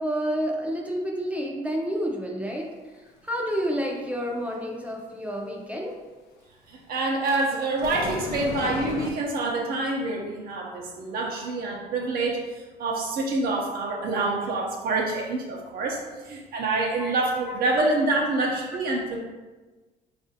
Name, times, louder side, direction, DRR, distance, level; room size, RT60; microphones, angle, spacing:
voice 1, 0.0-2.7 3.2-6.0 17.0-17.2 17.5-17.6 18.4-18.5, equal, 10° right, -1 dB, 0.5 m, -29 dB
voice 2, 6.7-19.2, right 2 dB, 60° right, -1 dB, 0.6 m, -27 dB
sound 1, 7.2-9.1, left 3 dB, 75° left, 0.5 m, -34 dB
4.1 x 2.5 x 2.7 m, 1.2 s
cardioid pair, 110°, 17 cm